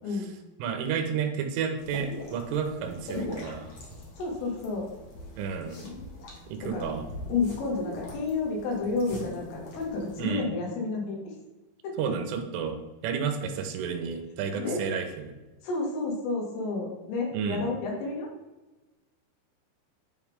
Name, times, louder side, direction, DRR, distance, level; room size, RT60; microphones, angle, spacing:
voice 1, 0.0-0.3 4.2-4.9 6.6-6.9 7.3-11.4 11.8-11.9 14.6-14.8 15.6-18.3, left 3 dB, 90° left, -1 dB, 4.6 m, -31 dB
voice 2, 0.6-3.7 5.4-5.7 6.5-7.0 10.2-10.5 12.0-12.8 13.0-15.3 17.3-17.7, right 6 dB, 85° right, 6 dB, 3.6 m, -31 dB
sound 1, 1.8-10.3, left 1 dB, 70° left, 1.2 m, -41 dB
11.0 x 5.7 x 3.6 m, 1.1 s
omnidirectional pair, 5.5 m